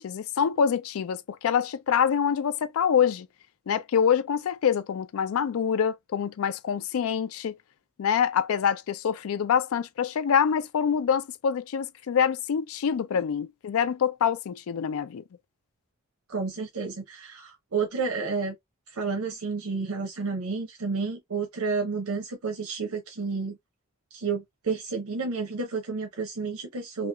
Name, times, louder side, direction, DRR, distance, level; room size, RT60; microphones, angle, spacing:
voice 1, 0.0-3.3 3.7-7.6 8.0-15.2, left 7 dB, 75° left, 0.3 m, -25 dB
voice 2, 16.3-18.5 18.9-23.6 24.1-27.1, right 4 dB, 85° right, 0.7 m, -31 dB
2.9 x 2.3 x 2.3 m
head